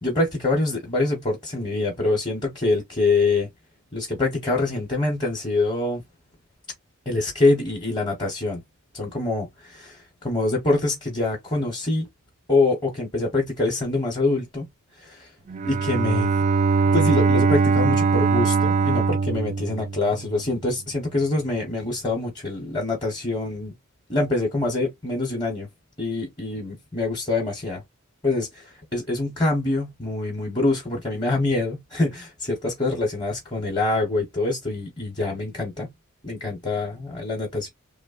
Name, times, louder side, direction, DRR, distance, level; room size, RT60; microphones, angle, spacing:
voice 1, 0.0-3.5 3.9-6.0 7.1-8.6 8.9-12.1 12.5-14.7 15.0-15.3 15.6-16.3 16.9-23.7 24.1-25.7 26.0-27.8 28.2-35.9 36.2-37.7, left 2 dB, 20° left, 1.0 m, -25 dB
Bowed string instrument, 15.5-20.5, right 4 dB, 35° right, 0.3 m, -21 dB
3.1 x 2.1 x 2.4 m
head